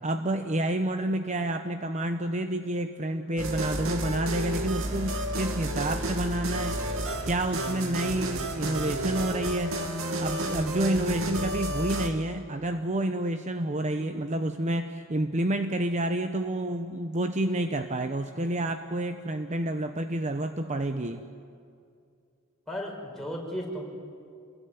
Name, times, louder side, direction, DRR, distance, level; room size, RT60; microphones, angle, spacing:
voice 1, 0.0-6.8 7.2-9.8 10.2-21.2, right 1 dB, 35° right, 8 dB, 0.9 m, -29 dB
sound 1, 3.4-12.1, right 1 dB, 75° right, 2.6 m, -31 dB
voice 2, 22.7-23.8, equal, ahead, -2 dB, 5.7 m, -35 dB
28.5 x 21.0 x 9.5 m, 2.4 s
head